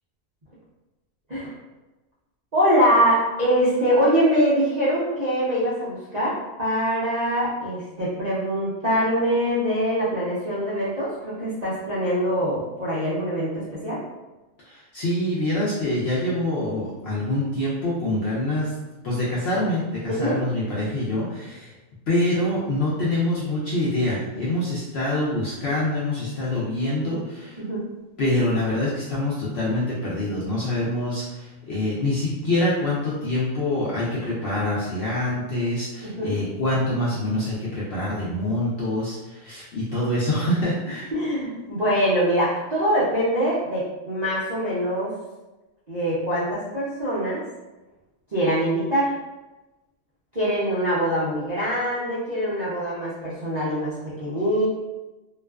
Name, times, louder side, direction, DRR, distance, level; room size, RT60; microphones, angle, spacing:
voice 1, 2.5-14.0 20.1-20.4 27.6-27.8 36.0-36.4 41.1-45.1 45.9-47.4 48.3-49.1 50.3-54.7, equal, 60° right, -10 dB, 0.4 m, -23 dB
voice 2, 14.6-18.7 19.0-21.7 22.1-27.6 28.2-41.1, left 1 dB, 65° left, -7 dB, 0.6 m, -25 dB
2.4 x 2.3 x 2.2 m, 1.1 s
omnidirectional pair, 1.5 m